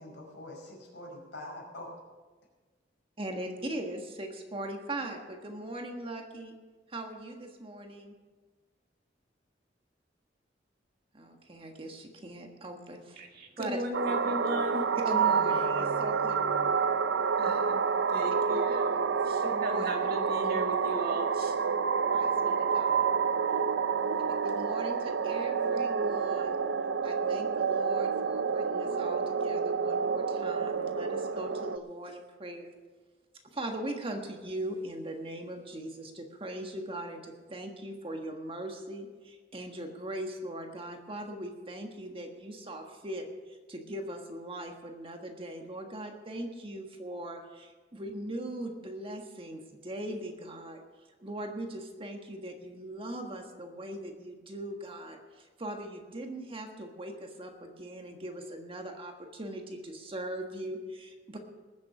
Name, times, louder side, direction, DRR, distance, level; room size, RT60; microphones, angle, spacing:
voice 1, 0.0-2.0 15.0-16.8 22.9-23.0, left 1 dB, 70° left, -2 dB, 5.3 m, -44 dB
voice 2, 3.2-6.5 6.9-8.1 11.1-13.2 13.6-13.8 15.0-16.4 18.5-18.8 19.4-19.9 22.1-23.1 24.4-26.6 27.0-32.7 33.5-50.8 51.2-61.4, right 1 dB, 30° right, 3 dB, 1.5 m, -40 dB
voice 3, 13.2-14.9 17.4-17.8 18.1-21.6, right 1 dB, 55° right, 2 dB, 2.0 m, -36 dB
sound 1, 13.9-31.8, right 6 dB, 85° right, 0.6 m, -28 dB
20.5 x 7.4 x 6.0 m, 1.3 s
head